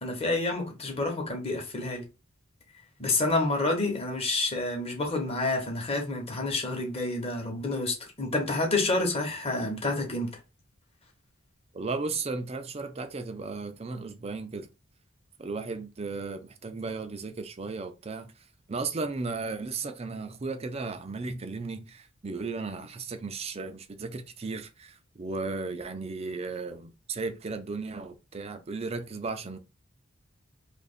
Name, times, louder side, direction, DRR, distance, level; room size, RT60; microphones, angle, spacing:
voice 1, 0.0-2.0 3.0-10.4, left 2 dB, 30° left, 1.1 m, -29 dB
voice 2, 11.7-14.7 15.4-18.3 18.7-29.6, right 3 dB, 30° right, 0.5 m, -35 dB
2.9 x 2.5 x 4.2 m
head